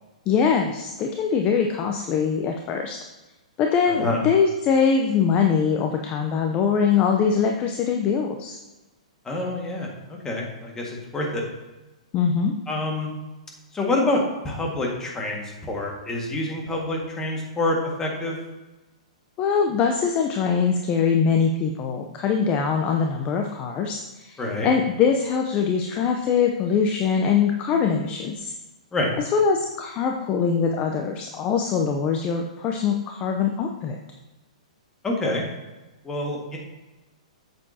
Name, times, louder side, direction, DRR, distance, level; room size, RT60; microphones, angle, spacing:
voice 1, 0.3-3.0 3.6-8.6 12.1-12.5 19.4-28.5 29.3-34.0, left 6 dB, 30° left, 3 dB, 0.7 m, -22 dB
voice 2, 3.9-4.2 9.3-11.4 12.7-13.1 13.7-18.4 24.4-24.7 28.9-29.1 35.0-35.4 36.0-36.6, left 2 dB, 15° left, -1 dB, 1.8 m, -27 dB
8.4 x 7.8 x 2.9 m, 1.1 s
hypercardioid pair, 130°, 4 cm